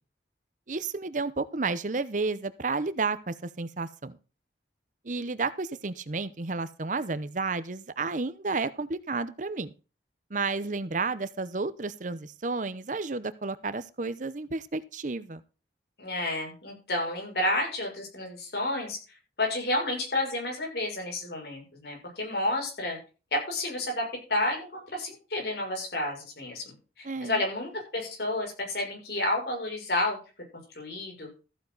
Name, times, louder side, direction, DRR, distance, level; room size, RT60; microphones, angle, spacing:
voice 1, 0.7-4.2 5.0-9.7 10.3-15.4 27.0-27.4, right 3 dB, 45° right, 15 dB, 0.8 m, -31 dB
voice 2, 16.0-19.0 19.4-23.0 23.3-30.2 30.7-31.3, left 1 dB, 65° left, 1 dB, 6.6 m, -30 dB
14.5 x 9.3 x 4.0 m, 0.33 s
head